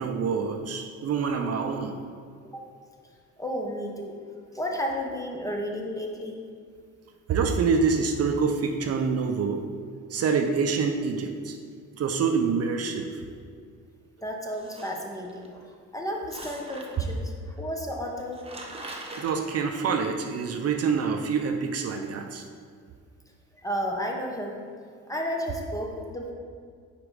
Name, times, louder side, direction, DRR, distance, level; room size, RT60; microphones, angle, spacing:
voice 1, 0.0-1.9 7.3-9.6 10.1-11.6 12.0-13.2 19.2-22.4, right 5 dB, 55° right, 4 dB, 0.6 m, -26 dB
voice 2, 3.4-4.2 4.5-6.4 14.2-18.4 18.8-18.9 23.6-24.6 25.1-26.3, equal, 10° left, 0 dB, 1.0 m, -32 dB
sound 1, 14.5-15.5 16.3-17.2 17.9-18.0 18.2-19.3, right 2 dB, 20° right, 0.8 m, -42 dB
5.0 x 4.7 x 5.0 m, 2.1 s
cardioid pair, 90°, 30 cm